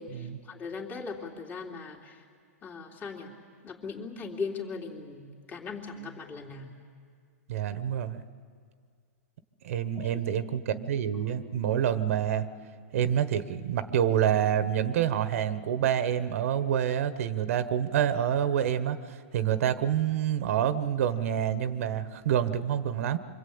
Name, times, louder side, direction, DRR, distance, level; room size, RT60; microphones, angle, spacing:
voice 1, 0.0-2.2 2.6-3.3 3.6-6.7 9.9-10.2 19.5-19.6, left 4 dB, 20° left, -1 dB, 3.3 m, -39 dB
voice 2, 7.5-8.2 9.6-12.5 12.9-23.2, right 9 dB, 60° right, 11 dB, 1.3 m, -27 dB
26.5 x 24.5 x 8.8 m, 2.1 s
hypercardioid pair, 140°, 8 cm